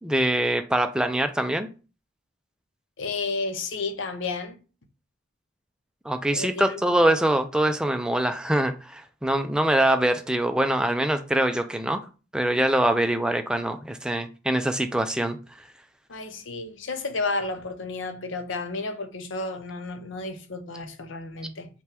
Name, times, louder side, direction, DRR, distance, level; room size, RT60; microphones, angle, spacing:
voice 1, 0.0-1.7 6.1-12.0 12.3-15.4, right 1 dB, 5° right, 0.3 m, -24 dB
voice 2, 3.0-4.6 6.3-7.2 16.1-21.7, left 3 dB, 80° left, 0.7 m, -32 dB
5.6 x 2.3 x 3.4 m
head